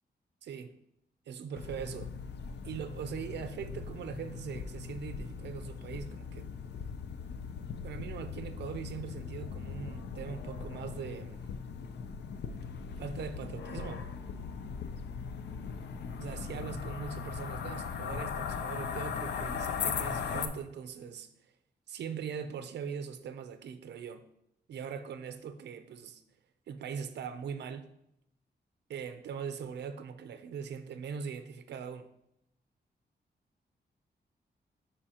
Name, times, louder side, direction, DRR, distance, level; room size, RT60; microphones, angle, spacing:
voice 1, 0.4-0.8 1.3-2.2 2.6-6.5 7.8-11.4 13.0-14.1 16.2-21.3 21.9-24.3 24.7-26.2 26.7-27.9 28.9-32.1, right 7 dB, 85° right, 0.6 m, -41 dB
sound 1, 1.5-20.5, left 6 dB, 80° left, 0.5 m, -39 dB
10.0 x 4.8 x 2.9 m
wide cardioid pair, 160°, 17 cm